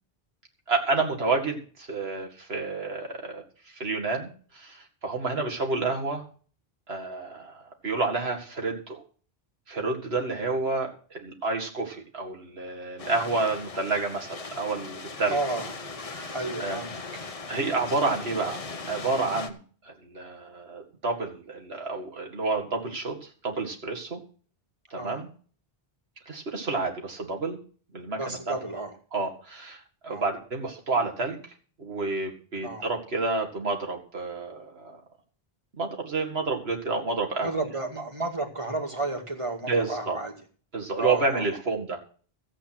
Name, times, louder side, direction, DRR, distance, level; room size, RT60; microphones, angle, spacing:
voice 1, 0.7-3.4 3.8-4.3 4.5-4.8 5.0-6.2 6.9-9.0 9.7-15.4 16.1-16.3 16.6-16.8 17.5-18.6 18.9-19.6 19.8-23.2 23.4-24.2 24.9-25.3 26.3-27.6 27.9-28.6 29.1-29.8 30.0-31.4 31.8-35.0 35.8-37.6 39.6-40.2 40.7-42.0, right 3 dB, 80° right, 1 dB, 2.4 m, -29 dB
sound 1, 13.0-19.5, left 3 dB, 35° left, 0.9 m, -38 dB
voice 2, 15.3-15.6 16.3-16.9 25.0-25.2 28.2-28.9 30.1-30.2 32.6-32.9 37.4-40.3 41.0-41.5, right 2 dB, 30° right, 3 dB, 2.1 m, -31 dB
14.0 x 8.3 x 6.0 m, 0.42 s
omnidirectional pair, 1.0 m